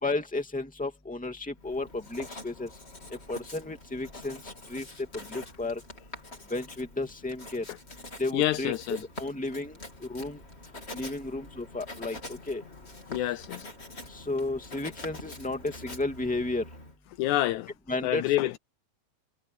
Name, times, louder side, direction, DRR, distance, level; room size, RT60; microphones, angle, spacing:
voice 1, 0.0-2.7 3.3-4.4 4.7-4.9 5.3-5.8 6.5-7.6 8.2-8.7 9.2-10.4 10.9-12.6 14.1-16.6 17.9-18.2, left 2 dB, 5° left, 2.1 m, -33 dB
Writing, 1.6-17.0, left 2 dB, 20° left, 3.4 m, -45 dB
voice 2, 8.3-9.0 13.1-13.7 17.2-17.7 18.0-18.6, left 14 dB, 80° left, 2.0 m, -27 dB
omnidirectional pair, 3.5 m